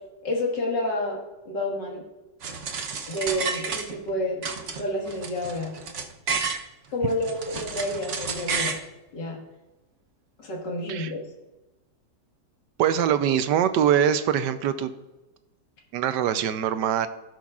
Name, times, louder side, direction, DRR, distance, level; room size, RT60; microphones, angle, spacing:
voice 1, 0.2-2.0 3.1-4.5 4.8-5.7 6.9-8.7 9.1-9.4 10.4-11.2, left 1 dB, 90° left, -1 dB, 2.4 m, -29 dB
sound 1, 2.4-4.1 4.4-6.6 7.1-8.8, right 5 dB, 55° right, 1.0 m, -31 dB
voice 2, 12.8-14.9 15.9-17.1, right 9 dB, 85° right, 11 dB, 1.2 m, -23 dB
17.0 x 6.3 x 2.4 m, 1.0 s
omnidirectional pair, 1.8 m